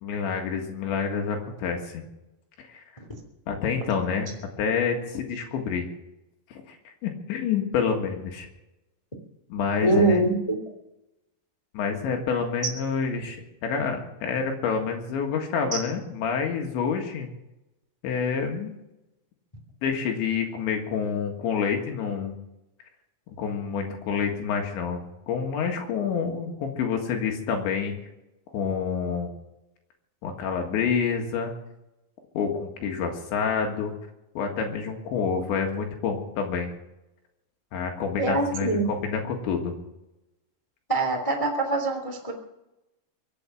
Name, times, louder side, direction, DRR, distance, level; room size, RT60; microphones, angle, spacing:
voice 1, 0.0-2.0 2.6-2.8 3.5-4.3 4.6-5.9 6.5-8.5 9.5-10.2 11.7-17.3 18.0-18.7 19.8-22.3 23.4-27.9 28.5-29.3 30.2-31.5 32.4-33.9 34.4-36.7 37.7-39.7, left 6 dB, 75° left, 3 dB, 4.0 m, -28 dB
voice 2, 9.8-10.6 38.2-38.8 40.9-42.3, right 2 dB, 15° left, 2 dB, 1.2 m, -23 dB
24.5 x 8.4 x 6.0 m, 0.92 s
omnidirectional pair, 5.3 m